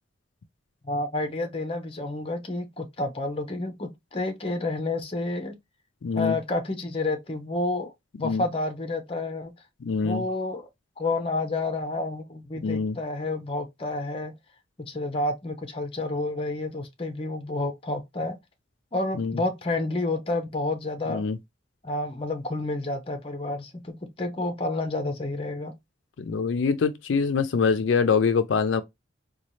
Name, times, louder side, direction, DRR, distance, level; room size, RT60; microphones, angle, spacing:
voice 1, 0.8-5.5 6.1-7.9 8.2-9.5 10.0-10.7 11.0-14.3 14.9-18.4 18.9-21.2 21.8-25.7, left 2 dB, 30° left, 0.7 m, -30 dB
voice 2, 6.0-6.4 8.2-8.4 9.8-10.2 12.6-13.0 19.2-19.4 21.1-21.4 26.2-28.8, left 5 dB, 80° left, 0.4 m, -24 dB
4.0 x 2.3 x 3.1 m
head